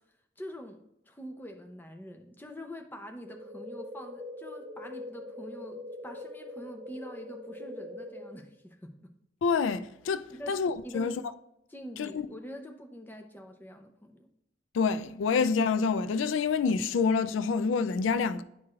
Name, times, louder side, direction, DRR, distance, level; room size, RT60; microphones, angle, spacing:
voice 1, 0.4-0.8 1.1-8.9 10.3-10.6 10.8-11.1 11.7-14.3, equal, 10° left, 0.5 m, -45 dB
sound 1, 3.3-8.3, left 1 dB, 25° right, 1.8 m, -43 dB
voice 2, 9.4-11.2 12.0-12.2 14.7-18.4, left 5 dB, 85° left, 0.3 m, -27 dB
9.6 x 4.6 x 2.4 m
head